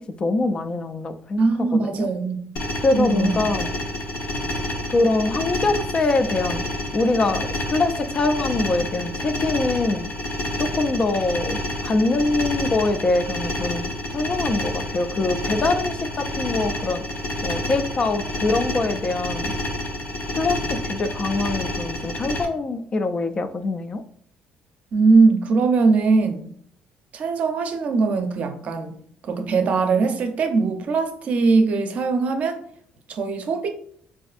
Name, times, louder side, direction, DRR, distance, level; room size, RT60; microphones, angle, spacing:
voice 1, 0.2-2.1 2.8-3.7 4.9-6.6 6.9-10.1 10.6-17.1 17.4-19.5 20.4-24.0, left 3 dB, 30° left, 0.3 m, -24 dB
voice 2, 1.4-2.5 2.9-3.3 24.9-26.5 27.1-32.6 33.1-33.7, right 4 dB, 50° right, 0.5 m, -21 dB
sound 1, 2.6-22.4, left 1 dB, 70° left, 0.8 m, -29 dB
4.1 x 2.5 x 2.4 m
cardioid pair, 120°, 3 cm